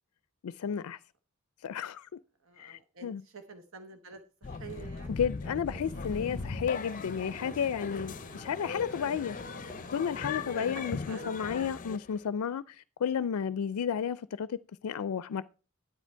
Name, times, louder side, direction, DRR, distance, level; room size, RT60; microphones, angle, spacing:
voice 1, 0.4-1.0 1.6-2.2 2.6-3.2 5.1-9.4 9.9-15.4, left 7 dB, 85° left, 0.4 m, -32 dB
voice 2, 2.4-5.2 10.2-11.7, right 5 dB, 65° right, 1.0 m, -48 dB
sound 1, 4.4-12.2, left 4 dB, 35° left, 0.6 m, -39 dB
sound 2, 5.0-5.1 5.4-5.9 6.7-6.8 7.3-7.7 8.9-9.8 10.2-10.3 10.9-11.9, right 1 dB, 10° right, 2.1 m, -52 dB
Engine, 5.8-11.0, right 3 dB, 85° right, 1.2 m, -52 dB
10.0 x 9.0 x 4.4 m
head